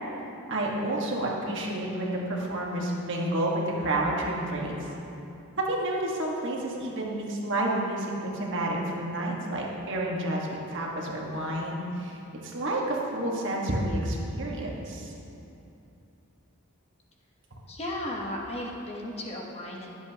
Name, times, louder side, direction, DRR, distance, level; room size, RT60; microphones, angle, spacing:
voice 1, 0.5-4.9 5.7-12.2 12.4-15.1, right 1 dB, 55° right, -2 dB, 1.6 m, -30 dB
voice 2, 17.7-19.9, left 1 dB, 30° left, -2 dB, 1.1 m, -35 dB
21.5 x 7.7 x 2.9 m, 2.8 s
head